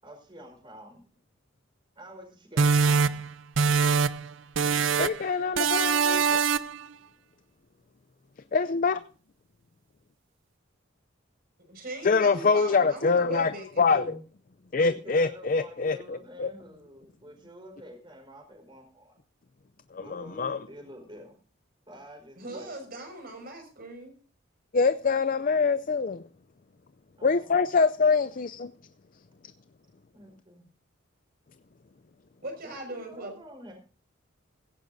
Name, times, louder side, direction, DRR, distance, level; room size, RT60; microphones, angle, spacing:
voice 1, 0.0-1.1 2.0-3.2 14.8-19.1 19.9-21.3 21.9-22.7 27.2-27.5 30.1-30.7 32.6-33.7, equal, 25° right, 4 dB, 4.7 m, -48 dB
sound 1, 2.6-4.3 4.6-5.2 5.6-6.8, right 5 dB, 70° right, 0.6 m, -23 dB
voice 2, 5.0-6.4 8.5-9.0 12.0-13.5 13.8-14.2 14.7-16.5 19.9-20.6 24.7-26.2 27.2-28.7, left 4 dB, 45° left, 12 dB, 0.5 m, -24 dB
voice 3, 11.6-14.2 22.4-24.1 32.4-33.4, right 1 dB, 50° right, 5 dB, 5.9 m, -39 dB
16.5 x 15.5 x 2.7 m, 0.40 s
head